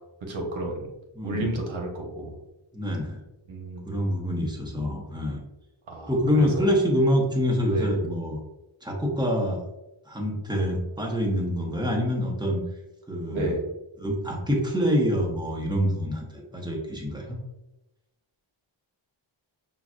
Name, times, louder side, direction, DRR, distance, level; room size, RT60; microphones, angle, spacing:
voice 1, 0.2-0.9 1.2-2.3 3.5-4.0 5.9-6.5 7.7-8.0 13.3-13.6, right 1 dB, 70° right, 1 dB, 1.1 m, -32 dB
voice 2, 1.1-1.6 2.7-3.2 3.8-5.4 6.1-8.4 8.8-9.6 10.0-12.6 13.1-13.5 14.0-17.4, equal, 10° right, -1 dB, 1.0 m, -26 dB
5.7 x 2.5 x 2.4 m, 0.95 s
wide cardioid pair, 75°, 48 cm